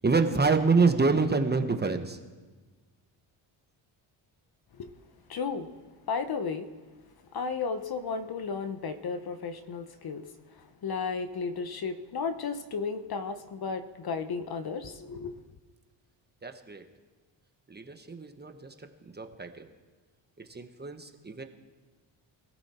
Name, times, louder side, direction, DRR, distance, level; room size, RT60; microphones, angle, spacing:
voice 1, 0.0-2.2 16.4-16.8 17.7-18.5 19.2-19.5 20.5-21.0 21.2-21.4, right 4 dB, 20° right, 1.1 m, -26 dB
voice 2, 5.3-5.7 6.1-6.7 7.3-10.2 10.8-15.4, left 5 dB, 50° left, 1.1 m, -33 dB
21.5 x 14.5 x 4.4 m
cardioid pair, 105°, 49 cm